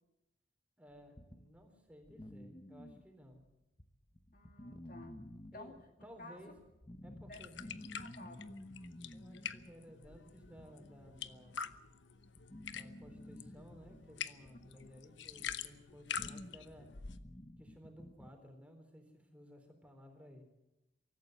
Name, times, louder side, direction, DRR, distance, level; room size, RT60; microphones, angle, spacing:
voice 1, 0.8-3.4 5.5-6.5 7.0-7.6 9.1-11.6 12.7-16.9 17.6-20.4, equal, 5° right, 4 dB, 3.9 m, -57 dB
sound 1, 0.9-3.5 3.8-18.3, left 1 dB, 25° left, 1.1 m, -53 dB
voice 2, 4.3-5.2 5.5-5.7 6.2-6.4 7.3-7.5 7.8-8.5 14.8-14.9, left 2 dB, 50° left, 4 dB, 2.3 m, -53 dB
sound 2, 7.3-17.2, left 7 dB, 75° left, 1.0 m, -46 dB
24.5 x 14.0 x 8.0 m, 0.94 s
head